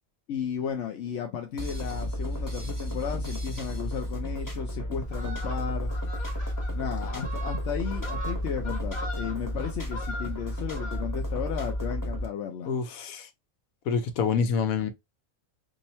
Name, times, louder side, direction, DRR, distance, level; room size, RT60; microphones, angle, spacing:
voice 1, 0.3-5.9 6.7-12.7, left 8 dB, 65° left, 0.8 m, -34 dB
sound 1, 1.6-12.3, equal, 15° left, 1.1 m, -32 dB
Fowl, 5.0-11.3 11.7-11.9, equal, 45° left, 1.3 m, -40 dB
voice 2, 12.7-13.3 13.9-14.9, left 6 dB, 85° left, 1.1 m, -27 dB
2.8 x 2.7 x 4.1 m
omnidirectional pair, 1.4 m